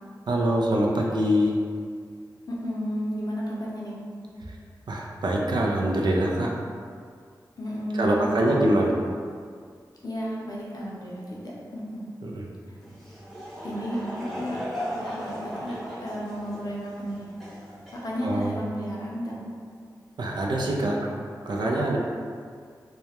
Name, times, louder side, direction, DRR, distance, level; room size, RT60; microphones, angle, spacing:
voice 1, 0.3-1.6 4.5-4.6 4.9-6.6 7.9-9.0 12.2-12.5 18.2-18.5 20.2-21.1 21.5-22.0, right 1 dB, 75° right, -1 dB, 0.3 m, -24 dB
voice 2, 2.5-4.0 7.6-8.7 10.0-12.0 13.6-15.7 16.0-17.2 17.9-19.3, equal, 55° left, -5 dB, 0.6 m, -33 dB
Laughter / Crowd, 12.8-18.6, equal, ahead, 0.7 m, -37 dB
2.2 x 2.0 x 2.8 m, 2.1 s
cardioid pair, 55°, 8 cm